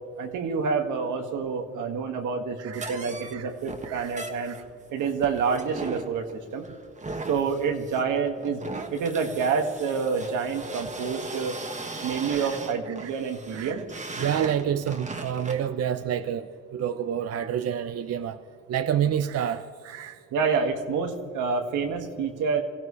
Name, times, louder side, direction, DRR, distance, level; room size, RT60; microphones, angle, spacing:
voice 1, 0.2-4.6 4.9-6.7 7.3-8.6 8.9-11.5 12.0-13.8 20.3-22.6, right 5 dB, 85° right, 3 dB, 2.0 m, -28 dB
voice 2, 2.6-2.9 3.3-3.5 3.8-4.1 4.4-4.5 12.3-12.5 12.9-13.1 13.5-13.8 14.2-18.4 18.7-20.2, right 9 dB, 55° right, 9 dB, 0.7 m, -29 dB
sound 1, 2.7-15.7, right 3 dB, 25° right, 1.5 m, -38 dB
25.5 x 15.5 x 3.3 m, 2.1 s
cardioid pair, 90°, 30 cm